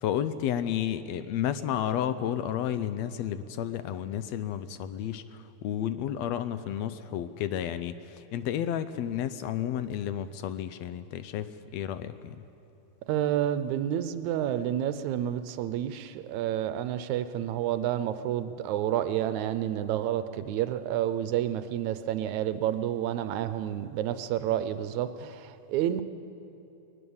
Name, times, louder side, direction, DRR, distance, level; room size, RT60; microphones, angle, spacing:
voice 1, 0.0-12.4, left 10 dB, 75° left, 12 dB, 1.7 m, -32 dB
voice 2, 13.1-26.0, right 11 dB, 80° right, 11 dB, 2.0 m, -29 dB
20.5 x 20.0 x 7.1 m, 2.9 s
omnidirectional pair, 3.3 m